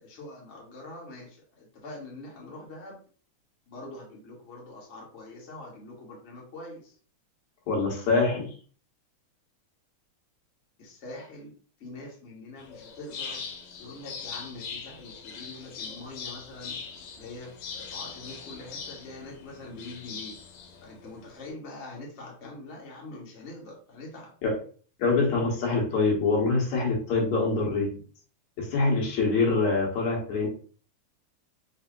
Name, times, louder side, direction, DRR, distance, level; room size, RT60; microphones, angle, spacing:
voice 1, 0.0-3.0 3.7-6.9 10.8-11.5 11.8-13.4 13.8-16.8 17.2-20.3 20.8-24.3, left 2 dB, 45° left, -3 dB, 0.9 m, -44 dB
voice 2, 7.7-8.5 24.4-24.6 25.0-27.9 28.6-30.5, left 3 dB, 70° left, -2 dB, 2.6 m, -25 dB
sound 1, 12.6-21.5, left 5 dB, 85° left, 2.3 m, -41 dB
5.4 x 2.1 x 3.7 m, 0.42 s
omnidirectional pair, 3.4 m